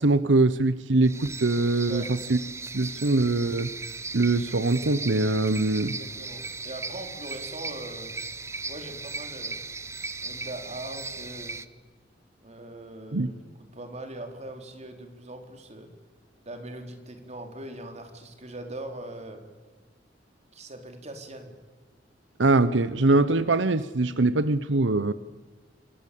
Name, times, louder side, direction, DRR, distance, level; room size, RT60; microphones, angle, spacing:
voice 1, 0.0-2.0 2.3-2.4 2.7-3.7 4.1-6.0 13.1-13.3 22.4-25.1, right 2 dB, 90° right, 14 dB, 1.0 m, -22 dB
sound 1, 1.0-11.6, right 3 dB, 15° right, 1.0 m, -37 dB
voice 2, 5.8-8.1 8.6-9.6 10.2-11.6 12.4-15.9 16.4-19.4 20.5-21.5, right 1 dB, 40° right, 5 dB, 4.2 m, -41 dB
27.5 x 23.5 x 8.7 m, 1.4 s
head